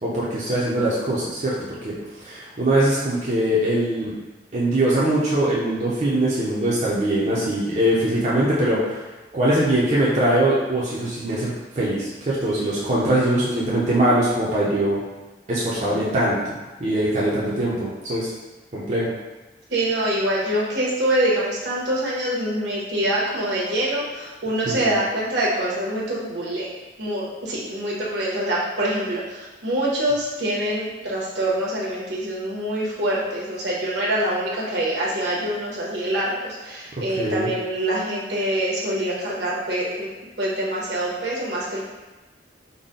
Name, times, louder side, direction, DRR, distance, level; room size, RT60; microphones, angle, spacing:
voice 1, 0.0-2.0 2.2-4.1 4.5-9.0 9.3-15.0 15.5-18.3 18.7-19.1 24.7-24.9 37.2-37.5, right 1 dB, 40° right, -7 dB, 0.6 m, -22 dB
voice 2, 19.7-26.7 27.0-40.1 40.4-41.9, right 1 dB, 75° right, -5 dB, 1.0 m, -25 dB
4.0 x 2.2 x 3.7 m, 1.2 s
head